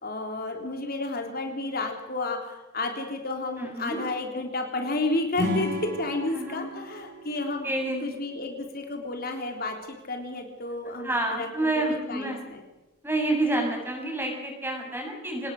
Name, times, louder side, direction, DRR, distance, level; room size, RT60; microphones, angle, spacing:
voice 1, 0.0-7.7 8.0-11.7 12.1-12.6, left 2 dB, 45° left, 3 dB, 3.4 m, -31 dB
voice 2, 3.6-4.0 6.3-6.6 7.6-8.0 11.0-12.5 13.0-15.5, right 2 dB, 10° right, 1 dB, 7.0 m, -28 dB
Acoustic guitar / Strum, 5.3-8.6, left 1 dB, 40° right, 5.2 m, -34 dB
26.0 x 20.0 x 6.5 m, 1.1 s
head